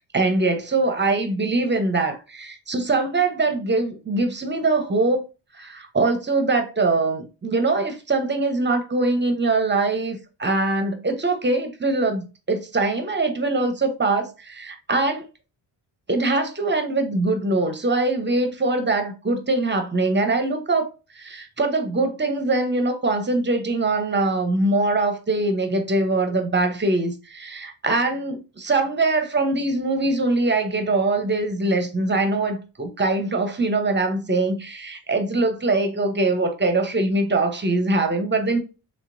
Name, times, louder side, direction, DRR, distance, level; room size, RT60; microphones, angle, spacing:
voice 1, 0.1-5.2 5.5-15.3 16.1-38.6, right 2 dB, 20° right, 0.8 m, -22 dB
3.2 x 2.9 x 2.6 m
supercardioid pair, 50°, 49 cm